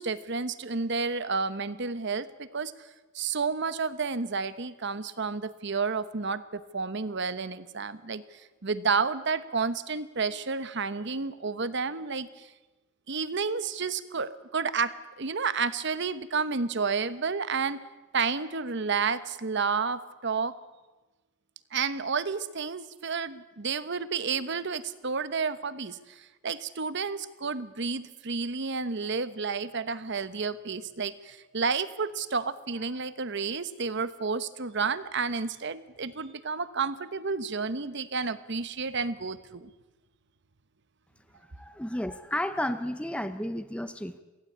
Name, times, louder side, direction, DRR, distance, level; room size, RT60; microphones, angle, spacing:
voice 1, 0.0-2.7 3.1-12.5 13.1-17.8 18.1-20.6 21.7-39.7, right 5 dB, 60° right, 14 dB, 1.1 m, -31 dB
voice 2, 41.6-44.2, left 1 dB, 5° left, 10 dB, 0.9 m, -32 dB
23.5 x 16.5 x 8.7 m, 1.2 s
head